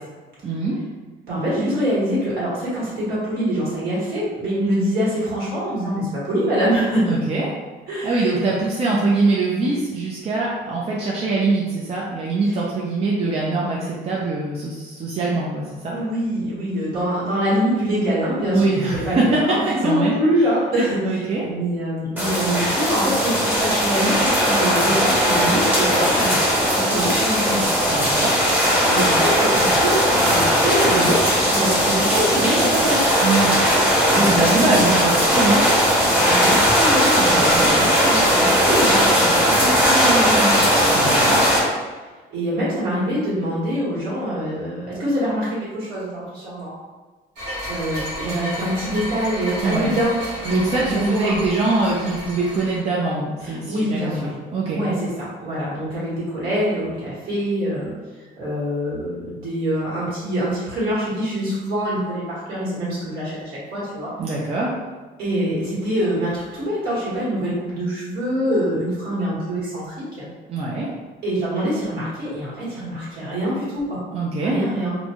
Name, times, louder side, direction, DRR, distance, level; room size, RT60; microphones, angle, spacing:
voice 1, 0.4-0.8 7.1-7.5 8.0-16.0 18.5-20.1 21.0-21.4 27.8-28.3 33.2-33.5 34.2-35.6 37.3-37.7 40.9-41.4 49.6-50.0 50.5-54.8 64.2-64.7 70.5-70.9 74.1-74.6, right 3 dB, 35° right, -4 dB, 0.5 m, -23 dB
voice 2, 1.3-7.2 7.9-8.4 12.4-12.5 15.9-26.4 26.7-27.7 28.9-33.2 34.1-34.8 36.2-40.7 42.3-46.7 47.7-51.4 53.4-54.3 54.7-57.9 58.4-64.1 65.2-70.3 71.2-74.0 74.4-75.0, equal, 65° right, -8 dB, 1.5 m, -24 dB
sound 1, 22.2-41.6, equal, 10° right, 0.9 m, -18 dB
sound 2, 47.4-52.8, equal, 80° right, 1.3 m, -32 dB
2.6 x 2.2 x 2.9 m, 1.3 s
cardioid pair, 110°, 17 cm